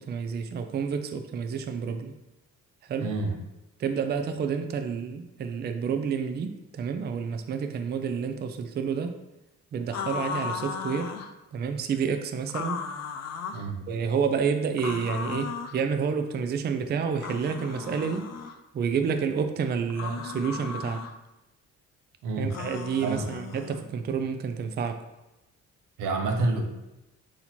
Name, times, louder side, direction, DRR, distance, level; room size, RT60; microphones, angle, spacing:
voice 1, 0.0-2.2 2.9-3.1 3.8-9.2 9.7-11.1 11.5-12.8 13.9-18.3 18.7-21.1 22.4-25.0, right 6 dB, 35° right, 7 dB, 0.4 m, -29 dB
voice 2, 3.0-3.4 13.5-13.8 22.2-22.5 23.0-23.3 26.0-26.7, right 3 dB, 85° right, 2 dB, 0.8 m, -28 dB
sound 1, 9.9-11.3 12.5-13.7 14.8-15.8 17.2-18.6 19.9-21.1 22.5-23.8, left 6 dB, 60° left, 0.5 m, -36 dB
4.1 x 2.8 x 4.3 m, 0.96 s
cardioid pair, 90°, 30 cm